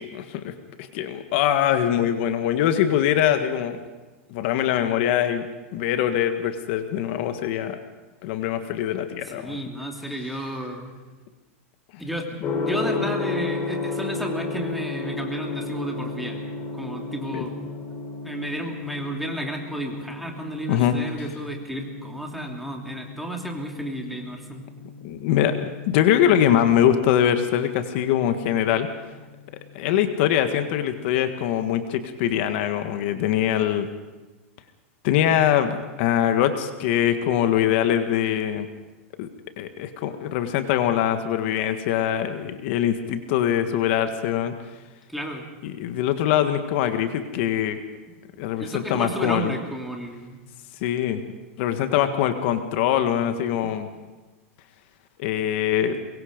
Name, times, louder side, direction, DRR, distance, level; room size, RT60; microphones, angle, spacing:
voice 1, 0.0-3.8 4.3-5.5 5.7-7.8 8.2-9.6 17.3-17.4 20.7-20.9 25.0-28.9 29.7-33.9 35.0-38.7 39.2-39.3 39.6-44.5 45.6-47.8 48.4-49.6 50.8-51.2 51.6-53.9 55.2-56.0, left 10 dB, 55° left, 8 dB, 1.6 m, -23 dB
voice 2, 9.3-10.9 12.0-12.3 12.5-16.4 16.7-17.5 18.2-24.6 45.1-45.4 48.6-50.4, right 1 dB, ahead, 1 dB, 2.6 m, -32 dB
Gong, 12.4-30.3, left 3 dB, 30° left, 3.7 m, -34 dB
23.5 x 22.0 x 5.2 m, 1.2 s
supercardioid pair, 145°, 7 cm